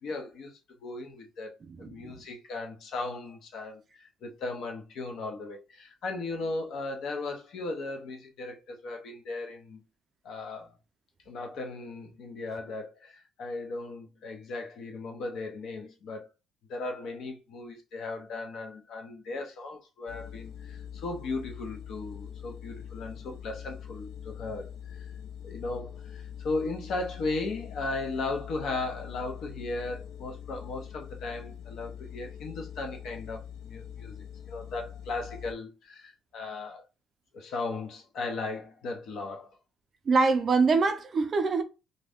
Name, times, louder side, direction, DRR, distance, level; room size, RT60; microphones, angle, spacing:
voice 1, 0.0-9.8 10.2-10.8 11.3-16.3 16.7-25.0 25.4-34.1 34.5-36.8 37.3-39.6, left 3 dB, 55° left, 0.7 m, -37 dB
voice 2, 1.8-2.1 40.1-41.6, right 4 dB, 30° right, 0.4 m, -24 dB
sound 1, 20.1-35.5, left 9 dB, 85° left, 0.4 m, -43 dB
2.6 x 2.3 x 3.4 m
cardioid pair, 160°, 0 cm